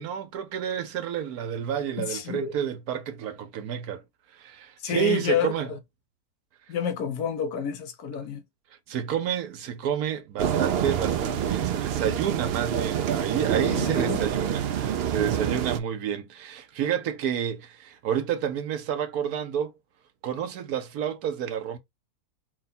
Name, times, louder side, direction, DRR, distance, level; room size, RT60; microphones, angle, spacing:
voice 1, 0.0-4.0 4.4-5.7 8.9-19.7 20.2-21.8, right 9 dB, 85° right, 1.3 m, -30 dB
voice 2, 2.0-2.5 4.8-5.8 6.7-8.4 13.7-14.2, left 8 dB, 85° left, 1.3 m, -29 dB
sound 1, 10.4-15.8, right 9 dB, 70° right, 0.6 m, -27 dB
4.7 x 2.3 x 4.1 m
omnidirectional pair, 1.6 m